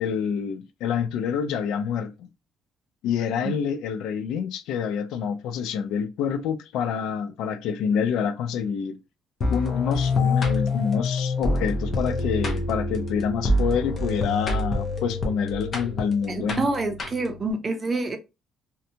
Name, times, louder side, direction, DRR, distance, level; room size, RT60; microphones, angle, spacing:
voice 1, 0.0-2.3 3.0-9.0 9.5-16.6, left 7 dB, 85° left, 0.3 m, -27 dB
sound 1, 9.4-17.5, left 2 dB, 35° left, 0.7 m, -26 dB
voice 2, 16.3-18.2, right 2 dB, 25° right, 0.5 m, -27 dB
2.6 x 2.2 x 2.7 m
cardioid pair, 145°, 0 cm